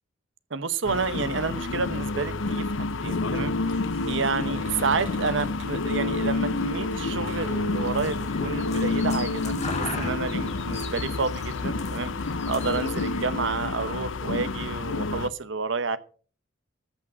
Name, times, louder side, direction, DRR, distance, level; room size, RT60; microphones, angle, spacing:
voice 1, 0.5-2.6 3.0-3.5 4.1-16.0, right 4 dB, 70° right, 14 dB, 0.9 m, -30 dB
sound 1, 0.8-15.3, left 3 dB, 75° left, 0.7 m, -29 dB
sound 2, 3.4-9.0, right 5 dB, 85° right, 6.4 m, -52 dB
sound 3, 7.7-13.2, left 3 dB, 35° left, 2.5 m, -39 dB
13.5 x 6.1 x 6.1 m, 0.42 s
head